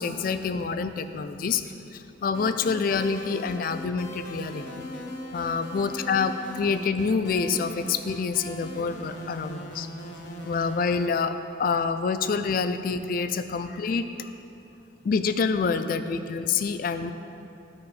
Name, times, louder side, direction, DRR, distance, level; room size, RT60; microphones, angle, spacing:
voice 1, 0.0-1.6 1.9-4.8 5.3-9.9 10.4-14.3 15.0-17.1, left 5 dB, 45° left, 10 dB, 0.3 m, -27 dB
sound 1, 2.3-11.1, equal, 65° left, 0.9 m, -39 dB
14.5 x 4.9 x 3.2 m, 2.7 s
head